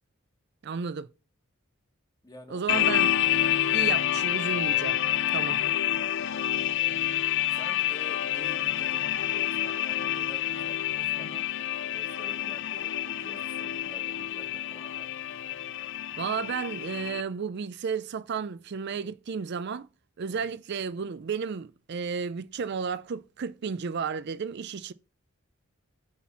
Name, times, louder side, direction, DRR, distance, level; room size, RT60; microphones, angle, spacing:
voice 1, 0.6-1.1 2.5-3.2 3.7-5.0 5.3-5.6 16.2-19.9 20.2-24.9, right 6 dB, 50° right, 0.4 m, -33 dB
voice 2, 2.2-2.8 6.8-7.1 7.5-11.5 11.8-15.1 15.4-15.5 20.3-20.5, left 1 dB, 20° left, 1.8 m, -50 dB
sound 1, 2.7-17.2, left 12 dB, 60° left, 0.5 m, -28 dB
9.8 x 4.3 x 7.2 m
head